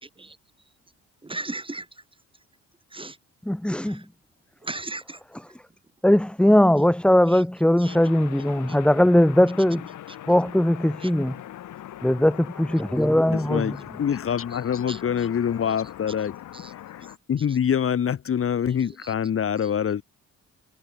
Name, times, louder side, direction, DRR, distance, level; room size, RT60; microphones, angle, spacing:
voice 1, 1.2-2.0 2.9-3.2 3.8-4.1 4.6-5.2 7.3-7.4 7.8-8.0 8.7-8.8 10.1-10.2 11.0-11.1 14.5-14.6 14.9-15.3 15.7-15.8 16.5-16.7 17.0-17.1 17.4-17.6 18.8-19.1 19.6-19.7, right 2 dB, 15° right, 5.5 m, -38 dB
voice 2, 3.4-4.0 6.0-9.9 10.3-11.4 12.0-14.0, left 1 dB, 5° left, 1.3 m, -20 dB
sound 1, 7.9-17.2, left 12 dB, 75° left, 3.0 m, -41 dB
voice 3, 13.3-16.4 17.0-20.0, left 8 dB, 45° left, 1.5 m, -25 dB
cardioid pair, 90°, 30 cm